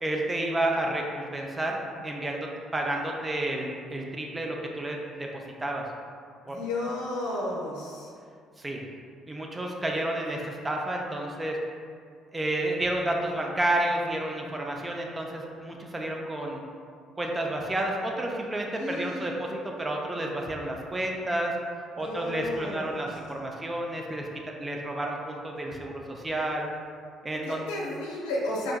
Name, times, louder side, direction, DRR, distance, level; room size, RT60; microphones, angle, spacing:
voice 1, 0.0-5.8 6.5-6.6 8.6-8.8 9.3-11.6 12.3-16.6 17.1-21.5 22.0-24.3 24.6-26.7 27.2-27.6, right 1 dB, 20° right, 0 dB, 0.5 m, -30 dB
voice 2, 6.5-8.1 18.8-19.3 22.0-23.0 27.4-28.7, left 2 dB, 75° left, -4 dB, 0.6 m, -33 dB
4.4 x 2.5 x 2.2 m, 2.2 s
hypercardioid pair, 50°, 0 cm